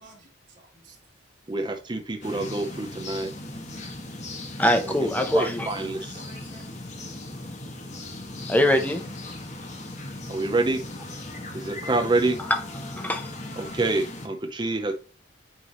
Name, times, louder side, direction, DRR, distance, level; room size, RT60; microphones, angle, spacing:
voice 1, 0.0-1.5 6.1-7.2, right 3 dB, 40° right, 3.5 m, -54 dB
voice 2, 1.5-3.3 5.0-5.1 5.3-6.2 10.3-10.8 11.5-12.4 13.6-14.9, right 2 dB, 25° right, 0.6 m, -27 dB
sound 1, 2.2-14.3, left 2 dB, 40° left, 1.1 m, -38 dB
voice 3, 4.6-5.7 8.5-9.0 12.4-12.6 13.0-13.3, left 1 dB, 10° left, 0.7 m, -23 dB
9.3 x 3.3 x 3.0 m
head